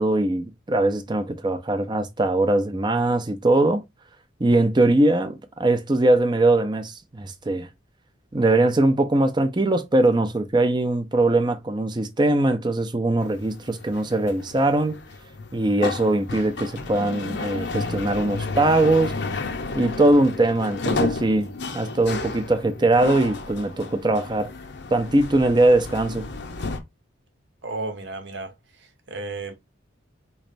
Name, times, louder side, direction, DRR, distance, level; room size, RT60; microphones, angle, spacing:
voice 1, 0.0-3.8 4.4-7.7 8.3-15.0 15.5-19.2 19.7-21.5 21.7-24.5 24.9-26.2, right 2 dB, 20° right, 0.5 m, -21 dB
sound 1, 13.2-26.8, left 3 dB, 55° left, 0.7 m, -32 dB
voice 2, 27.6-28.5 29.1-29.5, right 3 dB, 60° right, 0.9 m, -32 dB
4.1 x 3.2 x 2.5 m
head